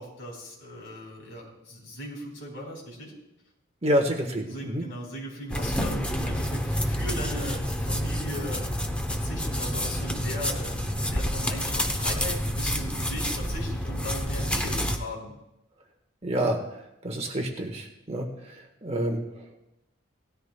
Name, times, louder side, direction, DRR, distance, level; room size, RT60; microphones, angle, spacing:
voice 1, 0.0-3.1 4.5-8.7 9.1-15.3, equal, 60° left, -1 dB, 4.1 m, -38 dB
voice 2, 3.8-4.8 16.2-19.6, equal, 30° right, 3 dB, 1.3 m, -29 dB
sound 1, 5.5-15.0, equal, 5° left, 0.7 m, -28 dB
18.0 x 13.5 x 2.2 m, 0.88 s
head